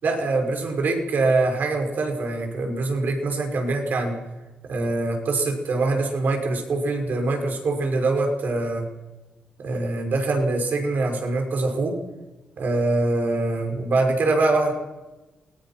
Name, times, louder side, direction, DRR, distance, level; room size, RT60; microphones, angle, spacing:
voice 1, 0.0-4.2 4.7-8.9 9.6-12.0 12.6-14.7, right 2 dB, 65° right, 3 dB, 5.9 m, -24 dB
27.5 x 20.0 x 6.0 m, 1.1 s
cardioid pair, 80°, 3 cm